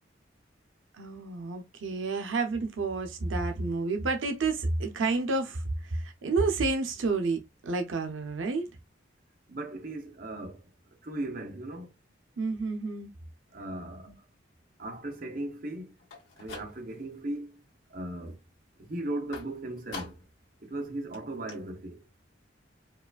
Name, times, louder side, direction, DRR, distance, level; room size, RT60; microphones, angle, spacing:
voice 1, 0.9-8.7 12.4-13.1 14.1-14.2, right 3 dB, 90° right, 0.6 m, -30 dB
voice 2, 9.5-11.9 13.5-14.1 14.8-15.9 16.4-17.6 17.9-18.4 18.8-20.2 20.6-22.0, right 1 dB, 45° right, 0.8 m, -37 dB
sound 1, 16.0-17.2 17.5-18.0 19.3-20.4 20.8-20.9 21.1-21.2 21.5-21.6, left 3 dB, 85° left, 1.6 m, -45 dB
4.6 x 2.4 x 2.3 m
head